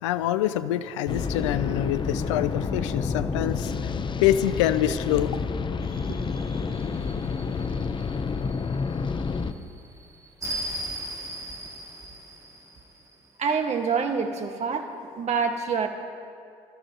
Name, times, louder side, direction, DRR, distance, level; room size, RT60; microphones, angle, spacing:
voice 1, 0.0-5.4, left 12 dB, 80° left, 14 dB, 0.5 m, -26 dB
sound 1, 1.1-9.5, left 5 dB, 30° left, 0.9 m, -29 dB
sound 2, 5.8-13.3, right 1 dB, 20° right, 3.4 m, -39 dB
voice 2, 13.4-14.9 15.2-15.9, right 5 dB, 45° right, 5 dB, 1.8 m, -26 dB
26.0 x 14.0 x 3.0 m, 2.4 s
hypercardioid pair, 55°, 16 cm